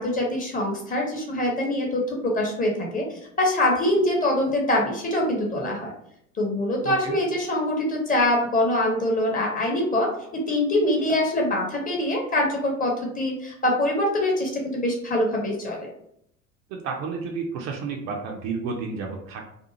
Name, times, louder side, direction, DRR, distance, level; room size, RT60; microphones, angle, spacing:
voice 1, 0.0-3.1 3.4-5.9 6.4-15.9, left 1 dB, 20° left, -1 dB, 0.8 m, -24 dB
voice 2, 6.8-7.2 16.7-19.4, right 5 dB, 40° right, 1 dB, 0.5 m, -31 dB
2.6 x 2.3 x 2.7 m, 0.73 s
figure-of-eight pair, 70°, 43 cm